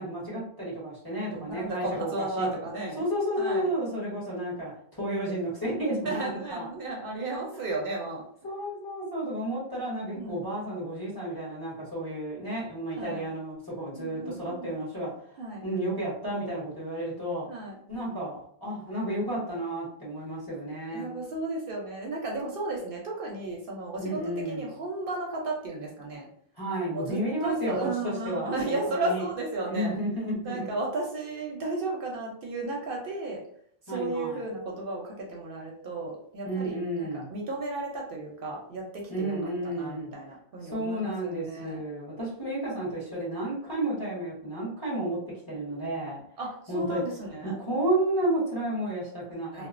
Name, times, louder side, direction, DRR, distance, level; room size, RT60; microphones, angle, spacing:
voice 1, 0.0-2.5 3.0-6.7 8.4-15.1 15.6-17.5 17.9-21.1 24.0-24.7 26.6-27.8 28.0-29.3 29.6-30.6 33.9-34.4 36.4-37.3 39.1-40.1 40.6-45.2 45.5-46.2 46.7-47.0 47.4-49.7, right 1 dB, 20° left, -8 dB, 1.2 m, -32 dB
voice 2, 1.1-3.0 3.4-3.7 6.0-8.2 10.1-10.4 13.0-13.3 13.9-14.7 15.4-15.7 17.5-17.8 20.9-24.2 24.5-26.3 26.9-30.0 30.4-33.4 33.8-41.8 46.4-47.6 49.5-49.7, right 2 dB, 65° right, -1 dB, 0.7 m, -34 dB
2.8 x 2.0 x 2.4 m, 0.63 s
omnidirectional pair, 1.0 m